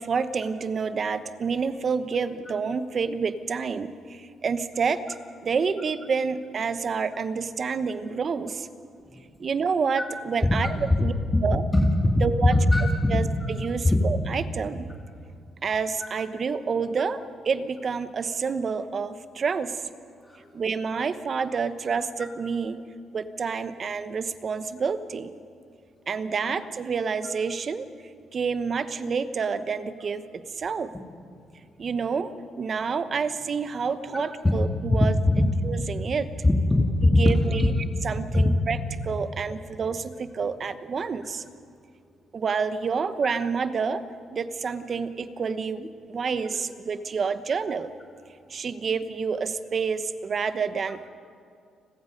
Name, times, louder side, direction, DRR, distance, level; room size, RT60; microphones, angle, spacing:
voice 1, 0.0-5.0 5.4-8.7 9.4-11.1 11.4-11.6 12.2-12.5 13.1-14.9 15.6-19.8 20.5-22.8 23.1-25.3 26.1-27.9 28.3-30.9 31.8-32.3 32.6-35.1 35.6-36.4 37.2-37.7 38.0-38.8 39.0-41.5 42.3-44.0 44.3-47.9 48.5-51.1, right 5 dB, 45° right, 12 dB, 1.1 m, -28 dB
voice 2, 11.7-12.2 12.5-13.5 13.8-14.0 16.0-16.1 20.3-20.4 34.1-34.2 34.9-35.4 36.4-37.7 38.3-38.5, left 1 dB, 15° left, 0 dB, 2.4 m, -21 dB
30.0 x 20.5 x 5.3 m, 2.3 s
cardioid pair, 90°, 0 cm